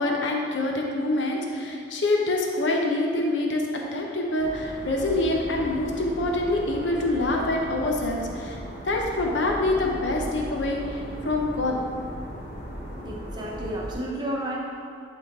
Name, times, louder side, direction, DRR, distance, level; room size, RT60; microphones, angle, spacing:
voice 1, 0.0-3.6 3.9-8.6 8.8-11.8, left 2 dB, 80° left, 0 dB, 0.8 m, -25 dB
sound 1, 4.4-13.9, equal, 35° left, 1.3 m, -37 dB
voice 2, 13.0-14.6, right 1 dB, 25° right, -3 dB, 1.0 m, -31 dB
11.0 x 3.8 x 3.7 m, 2.5 s
head